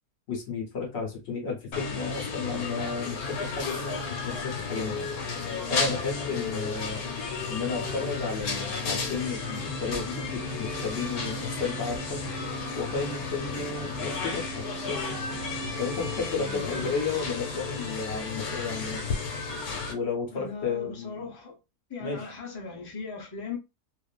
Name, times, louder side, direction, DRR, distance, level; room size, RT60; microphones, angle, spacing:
voice 1, 0.3-5.1 5.7-7.0 7.5-12.2 12.8-15.1 15.8-19.0 19.9-21.3 22.0-22.3, left 5 dB, 55° left, 0.9 m, -33 dB
sound 1, 1.7-19.9, left 4 dB, 75° left, 1.2 m, -33 dB
sound 2, 3.5-16.2, right 1 dB, 60° right, 0.9 m, -43 dB
voice 2, 16.4-17.2 20.3-21.6 21.9-23.6, left 4 dB, 35° left, 0.3 m, -38 dB
2.5 x 2.4 x 2.2 m
omnidirectional pair, 1.6 m